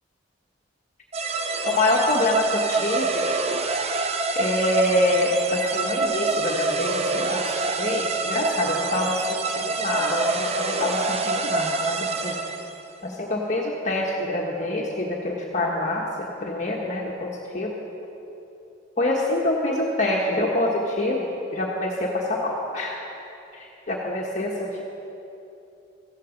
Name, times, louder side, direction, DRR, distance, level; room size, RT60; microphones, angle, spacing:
sound 1, 1.1-12.8, right 3 dB, 35° right, 0.8 m, -26 dB
voice 1, 1.6-3.2 4.3-12.4 13.0-17.8 19.0-23.0 23.5-24.8, left 1 dB, 40° left, -2 dB, 1.4 m, -26 dB
16.0 x 15.0 x 5.3 m, 3.0 s
head